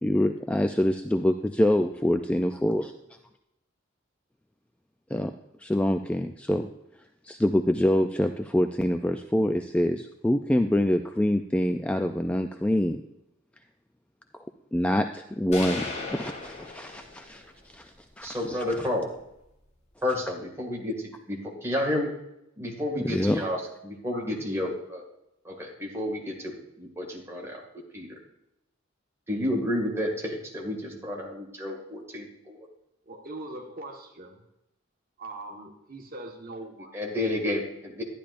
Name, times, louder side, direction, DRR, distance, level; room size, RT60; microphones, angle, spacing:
voice 1, 0.0-2.9 5.1-5.3 5.6-6.7 7.2-13.0 14.7-15.8 16.1-18.6 23.0-23.5, left 1 dB, 5° left, 6 dB, 0.3 m, -25 dB
sound 1, 15.5-17.5, left 3 dB, 35° left, 1.5 m, -36 dB
voice 2, 18.2-19.1 20.0-21.0 21.3-22.1 22.6-25.0 25.4-27.6 27.9-28.2 29.3-32.7 36.9-38.0, left 1 dB, 15° right, -1 dB, 2.0 m, -31 dB
voice 3, 24.1-24.7 33.0-34.4 35.2-37.0, right 2 dB, 45° right, 1 dB, 1.4 m, -41 dB
12.0 x 10.0 x 2.5 m, 0.86 s
head